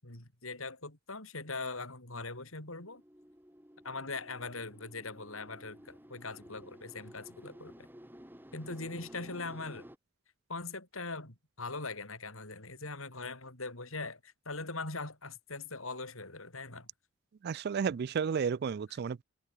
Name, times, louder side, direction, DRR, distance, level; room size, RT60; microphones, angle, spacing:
voice 1, 0.0-3.0 3.8-7.9 8.5-9.9 10.5-16.9 18.9-19.0, left 3 dB, 80° left, 7.0 m, -41 dB
sound 1, 2.4-10.0, equal, 10° right, 5.8 m, -53 dB
voice 2, 17.4-19.2, right 6 dB, 50° right, 0.3 m, -32 dB
head